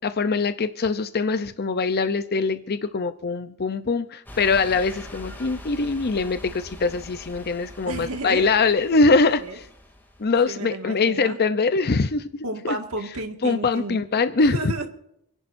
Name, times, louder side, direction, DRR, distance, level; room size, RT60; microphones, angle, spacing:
voice 1, 0.0-9.7 10.2-12.8 13.4-14.7, left 4 dB, 45° left, 10 dB, 0.6 m, -23 dB
sound 1, 4.3-10.5, left 1 dB, 10° left, 2.6 m, -43 dB
voice 2, 7.9-8.5 9.4-9.6 10.5-11.4 12.4-14.0 14.5-14.9, right 2 dB, 75° right, 5 dB, 1.9 m, -32 dB
29.0 x 11.0 x 2.6 m, 0.78 s
head